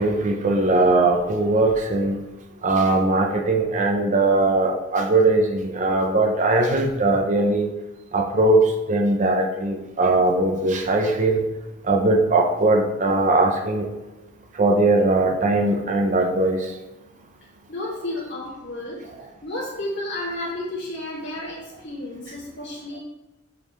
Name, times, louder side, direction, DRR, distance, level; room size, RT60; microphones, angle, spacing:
voice 1, 0.0-2.2 2.6-7.7 8.1-11.4 11.9-13.9 14.6-16.7, right 2 dB, 40° right, 1 dB, 0.7 m, -20 dB
voice 2, 17.7-23.0, left 1 dB, 65° left, -7 dB, 2.4 m, -32 dB
6.9 x 5.3 x 3.2 m, 1.0 s
head